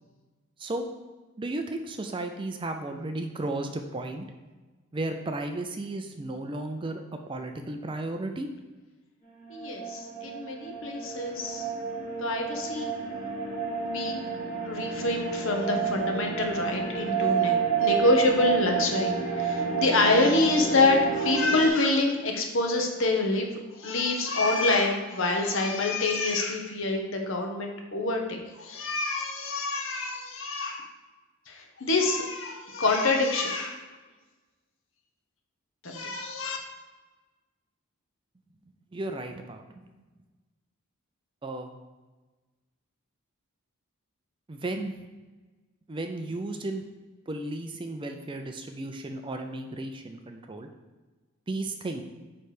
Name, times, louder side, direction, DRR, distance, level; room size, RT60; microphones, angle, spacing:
voice 1, 1.4-4.2 4.9-8.5 15.7-15.9 38.9-39.9 41.4-41.7 44.5-44.9 45.9-46.9 47.3-50.7 51.5-52.0, right 2 dB, 20° right, 5 dB, 0.4 m, -34 dB
sound 1, 9.4-21.7, right 5 dB, 25° left, 2.0 m, -30 dB
voice 2, 9.5-11.6 12.2-12.9 13.8-14.2 14.6-23.5 23.7-30.9 31.5-33.8 35.8-36.6, left 2 dB, 60° left, 2 dB, 1.0 m, -26 dB
8.8 x 3.2 x 5.0 m, 1.3 s
head